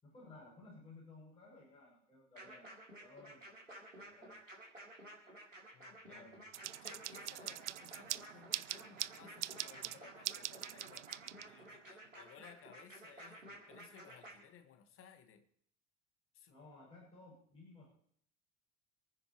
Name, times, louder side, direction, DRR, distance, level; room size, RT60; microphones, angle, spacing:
voice 1, 0.0-2.7 3.0-4.4 6.0-6.4 16.5-17.9, left 2 dB, 15° left, 7.1 m, -58 dB
sound 1, 2.4-14.3, right 1 dB, 90° right, 3.6 m, -54 dB
voice 2, 5.7-6.3 6.8-11.1 11.4-15.5 16.3-16.7, left 8 dB, 35° left, 1.8 m, -60 dB
sound 2, 6.5-11.8, right 14 dB, 70° right, 0.5 m, -43 dB
28.0 x 9.5 x 3.2 m
figure-of-eight pair, 75°, 37 cm